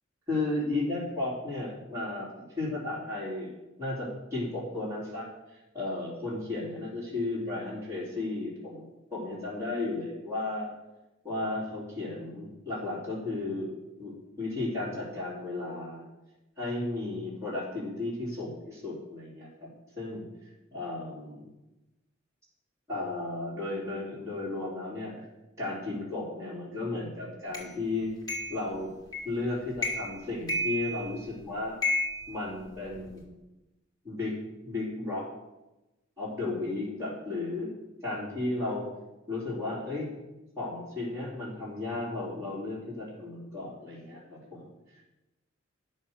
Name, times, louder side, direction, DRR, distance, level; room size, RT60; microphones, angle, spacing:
voice 1, 0.3-10.7 11.2-16.0 16.6-19.7 20.0-20.2 20.7-21.5 22.9-25.1 25.6-28.1 28.5-28.9 29.2-31.8 32.3-33.3 34.0-34.3 34.6-35.3 36.2-37.7 38.0-38.8 39.3-40.1 40.6-44.7, left 2 dB, 15° right, -9 dB, 3.7 m, -34 dB
sound 1, 27.5-27.7 28.3-28.6 29.1-29.4 29.8-30.2 30.5-31.3 31.8-33.1, left 1 dB, 20° left, 2.5 m, -32 dB
10.5 x 6.5 x 6.6 m, 1.0 s
head